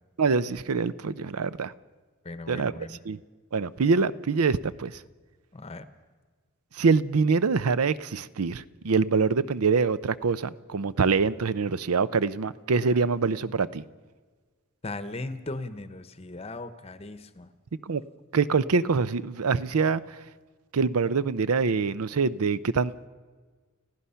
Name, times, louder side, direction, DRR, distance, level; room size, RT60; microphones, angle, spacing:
voice 1, 0.2-1.7 2.5-2.7 3.1-3.2 3.5-4.9 6.8-13.8 17.9-18.0 18.3-20.0 20.7-22.9, right 4 dB, 80° right, 0.6 m, -25 dB
voice 2, 2.2-3.0 5.5-5.9 14.8-17.5, left 2 dB, 25° left, 0.8 m, -38 dB
30.0 x 15.5 x 5.7 m
head